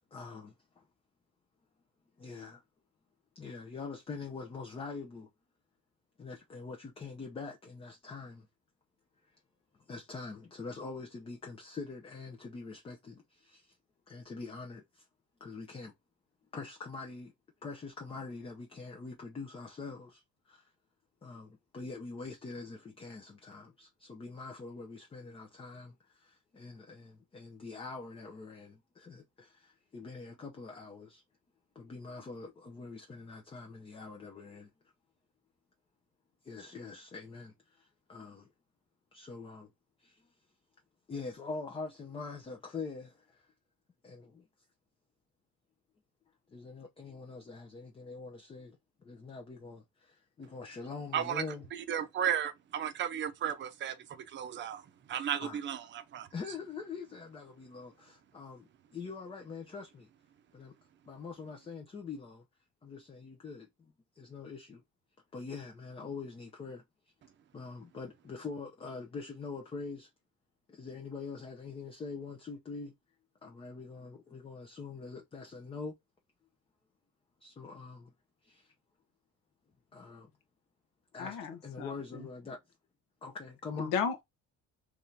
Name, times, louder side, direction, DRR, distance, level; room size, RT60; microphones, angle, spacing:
voice 1, 0.1-0.8 2.2-2.6 3.3-5.3 6.2-8.5 9.2-9.3 9.8-13.8 14.1-15.1 15.4-15.9 16.5-17.3 17.6-20.7 21.2-31.2 31.7-34.7 36.4-38.5 39.1-39.7 40.0-40.3 41.1-43.5 44.0-44.5 46.5-51.6 55.4-55.6 56.3-60.1 60.5-60.8 61.0-62.5 62.8-64.8 65.3-66.8 67.5-70.1 70.7-72.9 73.4-75.9 77.4-78.1 78.4-78.7 79.9-80.3 81.1-82.6 83.2-83.9, left 4 dB, 15° left, 0.6 m, -44 dB
voice 2, 51.1-51.4 51.7-56.3, right 9 dB, 35° right, 0.7 m, -34 dB
voice 3, 81.2-82.3 83.8-84.2, left 6 dB, 80° left, 1.1 m, -35 dB
3.6 x 3.2 x 2.7 m
cardioid pair, 155°, 32 cm